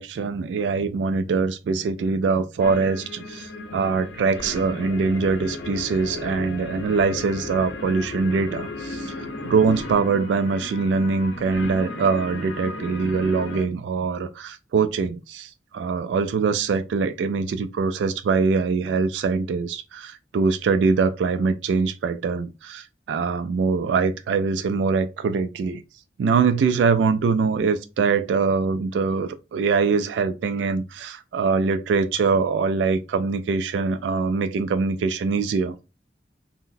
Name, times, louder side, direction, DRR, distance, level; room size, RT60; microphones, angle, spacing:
voice 1, 0.0-9.1 9.4-25.8 26.2-35.7, right 4 dB, 85° right, 0.3 m, -23 dB
sound 1, 2.6-13.7, left 2 dB, 90° left, 0.6 m, -35 dB
3.8 x 2.1 x 2.6 m
head